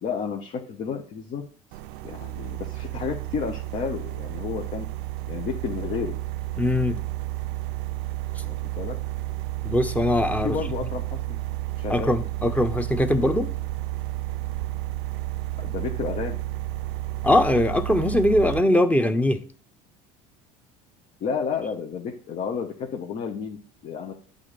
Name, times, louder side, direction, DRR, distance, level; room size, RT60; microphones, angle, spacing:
voice 1, 0.0-1.4 2.0-4.9 5.3-6.1 8.4-9.0 10.4-11.4 11.8-12.1 15.6-16.4 21.2-24.1, left 6 dB, 45° left, 2 dB, 1.2 m, -31 dB
sound 1, 1.7-18.6, right 16 dB, 75° right, 0.5 m, -31 dB
voice 2, 6.6-7.0 9.6-10.6 11.9-13.5 17.2-19.4, left 1 dB, 10° left, 9 dB, 1.0 m, -21 dB
8.3 x 3.8 x 6.7 m, 0.43 s
supercardioid pair, 105°, 17 cm